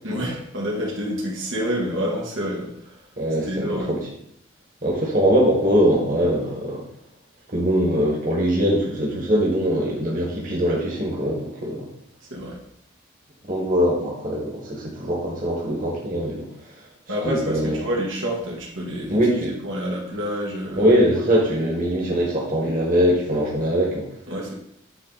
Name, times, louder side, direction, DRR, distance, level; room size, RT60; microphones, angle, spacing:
voice 1, 0.0-3.0 3.5-3.9 12.3-12.6 17.1-19.2 19.6-20.9 24.3-24.5, equal, 85° right, -3 dB, 2.0 m, -28 dB
voice 2, 3.2-4.0 4.8-6.8 7.5-11.9 13.5-16.5 17.2-17.8 19.1-19.5 20.8-24.0, equal, 45° right, -3 dB, 1.7 m, -22 dB
10.0 x 3.5 x 4.1 m, 0.74 s
head